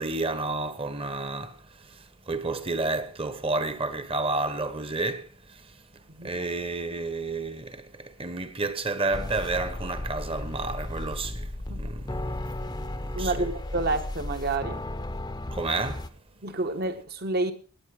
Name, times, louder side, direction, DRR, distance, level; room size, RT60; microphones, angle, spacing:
voice 1, 0.0-13.5 15.5-16.1, right 3 dB, 25° right, 1.1 m, -31 dB
sound 1, 9.1-16.1, left 1 dB, 20° left, 0.7 m, -34 dB
voice 2, 13.1-14.8 16.4-17.5, right 2 dB, 45° right, 1.3 m, -29 dB
18.5 x 8.7 x 4.9 m
head